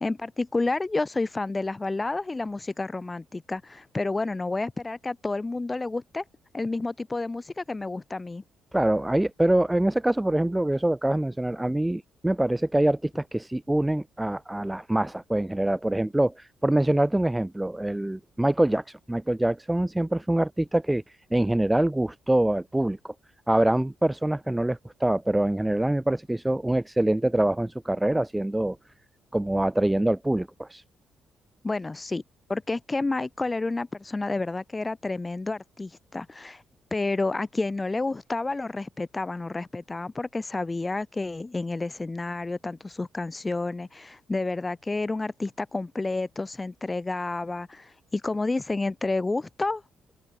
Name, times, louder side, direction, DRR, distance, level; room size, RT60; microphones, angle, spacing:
voice 1, 0.0-6.2 6.5-8.4 31.6-32.2 32.5-36.6 36.9-49.8, left 3 dB, 20° left, 0.8 m, -30 dB
voice 2, 8.7-21.0 21.3-23.1 23.5-28.8 29.3-30.8, right 1 dB, 10° right, 0.3 m, -25 dB
open air
cardioid pair, 90°, 0 cm